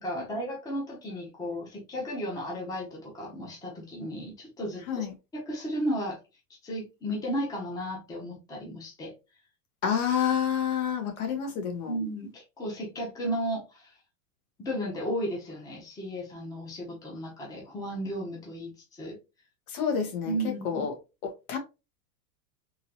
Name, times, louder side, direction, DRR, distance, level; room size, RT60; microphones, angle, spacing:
voice 1, 0.0-5.0 5.3-6.2 6.6-9.1 11.8-14.0 14.6-19.2 20.3-20.8, equal, 10° left, 0.7 m, -34 dB
voice 2, 9.8-11.9 19.7-20.3 20.6-20.9 21.5-21.6, left 8 dB, 75° left, 1.6 m, -28 dB
3.8 x 2.9 x 2.9 m
supercardioid pair, 165°, 43 cm